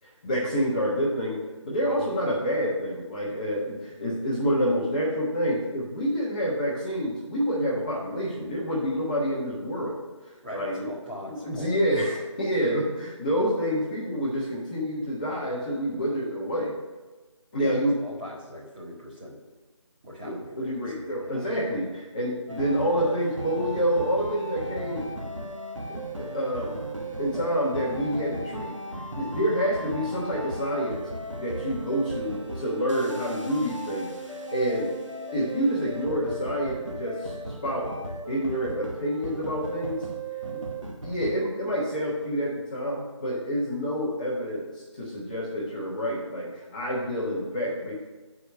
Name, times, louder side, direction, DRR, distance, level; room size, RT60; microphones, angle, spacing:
voice 1, 0.0-1.4 1.6-10.9 11.2-16.7 17.5-17.9 20.2-25.1 25.9-26.8 27.2-28.7 29.1-31.0 31.3-34.9 35.3-37.9 38.3-40.1 40.5-40.6 41.0-47.9, equal, 15° left, -8 dB, 1.1 m, -28 dB
voice 2, 10.4-12.0 17.6-19.4 20.0-21.6, left 1 dB, 15° right, -8 dB, 1.3 m, -41 dB
sound 1, 22.5-41.4, right 1 dB, 75° right, 1.1 m, -36 dB
7.6 x 4.9 x 5.6 m, 1.3 s
figure-of-eight pair, 165°, 16 cm